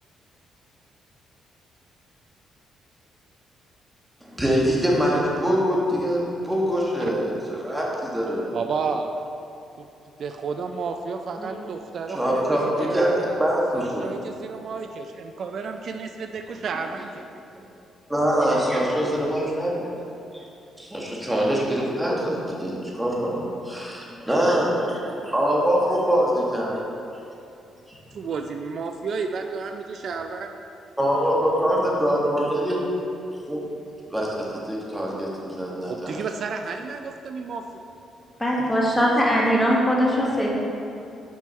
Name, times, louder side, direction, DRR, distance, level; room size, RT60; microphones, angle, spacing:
voice 1, 4.2-8.4 11.4-11.6 12.1-13.1 13.4-14.1 18.1-19.8 20.3-20.4 20.8-26.8 27.9-28.0 30.1-30.2 31.0-32.8 33.5-33.6 34.1-36.2, equal, 5° right, -4 dB, 1.5 m, -24 dB
voice 2, 8.5-9.1 10.2-13.4 13.7-17.3 28.1-30.5 35.8-37.8, right 5 dB, 60° right, 5 dB, 0.3 m, -31 dB
voice 3, 38.4-40.5, equal, 10° left, -3 dB, 1.4 m, -20 dB
6.3 x 5.2 x 4.4 m, 2.7 s
cardioid pair, 90°, 0 cm